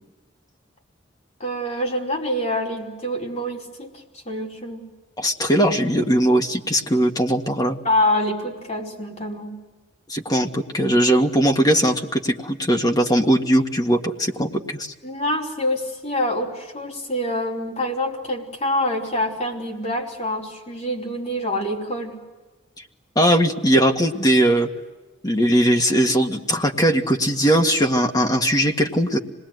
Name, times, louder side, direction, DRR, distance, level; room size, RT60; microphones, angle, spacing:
voice 1, 1.4-3.9 4.2-4.8 7.8-9.6 15.0-22.2, left 1 dB, 40° left, -1 dB, 4.7 m, -26 dB
voice 2, 5.2-7.8 10.1-14.9 23.1-24.7 25.2-29.2, equal, 20° left, 3 dB, 1.8 m, -19 dB
26.5 x 20.0 x 9.4 m, 1.2 s
head